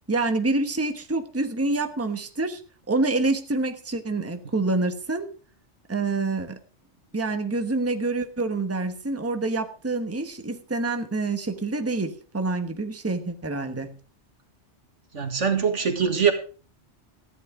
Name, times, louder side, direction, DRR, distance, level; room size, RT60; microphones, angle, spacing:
voice 1, 0.1-2.6 2.9-5.3 5.9-6.6 7.1-14.0, right 3 dB, 15° right, 7 dB, 1.1 m, -27 dB
voice 2, 15.1-16.3, right 6 dB, 85° right, 6 dB, 2.2 m, -22 dB
14.5 x 10.5 x 4.9 m, 0.38 s
omnidirectional pair, 1.2 m